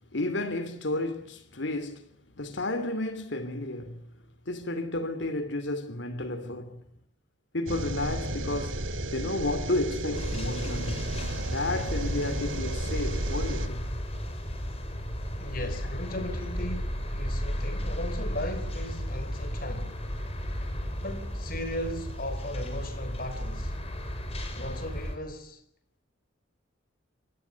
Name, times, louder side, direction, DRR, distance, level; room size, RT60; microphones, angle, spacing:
voice 1, 0.1-2.1 2.4-4.0 4.5-6.8 7.5-11.1 11.5-14.0 15.6-15.8, left 2 dB, 65° left, 2.8 m, -32 dB
sound 1, 7.7-13.7, right 1 dB, 80° right, 2.9 m, -33 dB
sound 2, 10.1-25.2, equal, 30° left, 5.6 m, -34 dB
voice 2, 15.4-20.1 21.0-23.8 24.5-25.6, left 1 dB, 45° left, 4.7 m, -37 dB
28.0 x 25.0 x 7.0 m
head